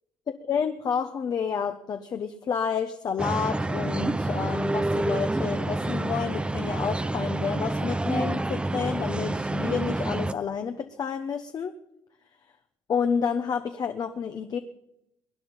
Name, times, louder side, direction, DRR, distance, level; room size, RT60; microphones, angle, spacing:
voice 1, 0.5-11.8 12.9-14.6, left 6 dB, 40° left, 6 dB, 1.1 m, -29 dB
sound 1, 3.2-10.3, right 2 dB, 10° right, 0.6 m, -28 dB
23.5 x 10.0 x 5.5 m, 0.83 s
cardioid pair, 110°, 10 cm